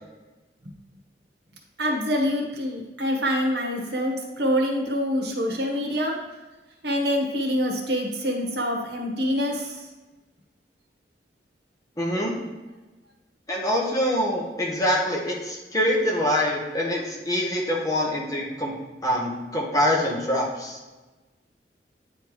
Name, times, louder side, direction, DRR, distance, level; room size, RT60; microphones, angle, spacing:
voice 1, 1.8-6.1 6.8-9.9, equal, 65° right, 1 dB, 1.3 m, -25 dB
voice 2, 12.0-12.3 13.5-18.7 19.0-20.8, left 1 dB, 20° left, -2 dB, 1.2 m, -25 dB
9.2 x 3.4 x 4.8 m, 1.2 s
head